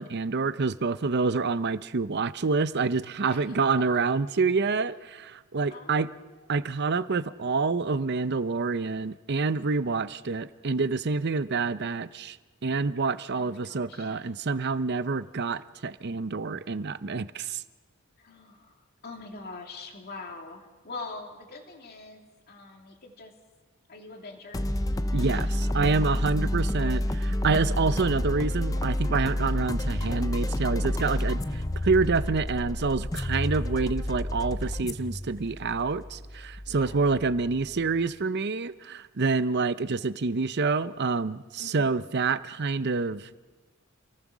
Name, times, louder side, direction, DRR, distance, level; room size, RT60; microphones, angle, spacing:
voice 1, 0.0-6.1 6.5-12.4 12.6-17.6 25.1-43.3, right 4 dB, 50° right, 14 dB, 0.7 m, -27 dB
voice 2, 3.2-3.9 5.7-6.7 13.3-14.2 18.2-18.7 19.0-23.3 23.9-24.7 25.3-25.5 25.8-25.9 36.7-37.2 41.6-42.1, left 3 dB, 45° left, 2 dB, 2.8 m, -44 dB
sound 1, 24.5-37.9, left 1 dB, 15° left, 0.6 m, -29 dB
28.0 x 18.5 x 6.2 m, 1.3 s
head